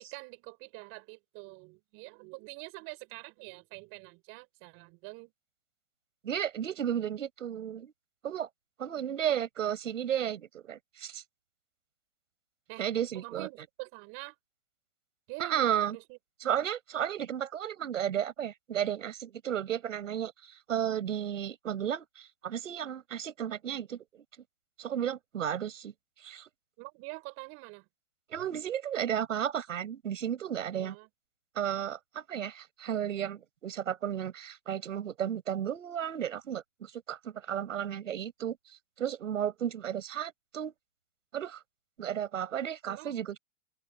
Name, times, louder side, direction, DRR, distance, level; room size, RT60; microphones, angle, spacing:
voice 1, 0.0-5.3 12.7-12.9 13.1-14.4 15.3-16.2 26.8-27.9 30.7-31.1 42.9-43.4, right 28 dB, 35° right, 7.3 m, -46 dB
voice 2, 6.2-7.9 8.2-8.5 8.8-11.2 12.8-13.5 15.4-16.0 16.4-24.2 24.8-25.9 26.2-26.5 28.3-31.0 31.5-38.6 39.0-40.7 41.3-41.6 42.0-43.4, right 9 dB, 90° right, 7.7 m, -33 dB
hypercardioid pair, 155°, 37 cm